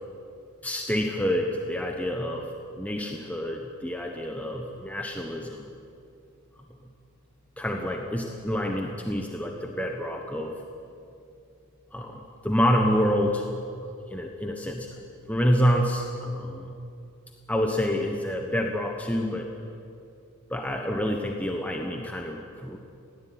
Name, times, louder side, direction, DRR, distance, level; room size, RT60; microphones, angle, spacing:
voice 1, 0.6-2.5 2.7-5.7 7.6-10.6 11.9-13.4 13.8-14.9 15.3-16.7 17.5-19.5 20.5-22.8, equal, 5° left, 1 dB, 1.2 m, -27 dB
21.5 x 16.5 x 9.4 m, 2.6 s
head